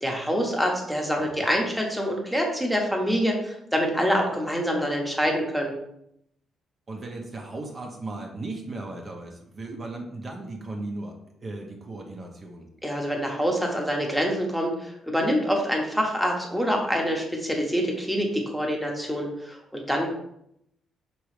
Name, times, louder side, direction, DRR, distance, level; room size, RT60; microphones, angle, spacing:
voice 1, 0.0-5.7 12.8-20.1, equal, ahead, 0 dB, 1.0 m, -26 dB
voice 2, 1.2-1.5 6.9-11.1 11.4-12.7, right 2 dB, 35° right, 1 dB, 0.7 m, -36 dB
4.8 x 3.0 x 3.2 m, 0.76 s
cardioid pair, 90°, 0 cm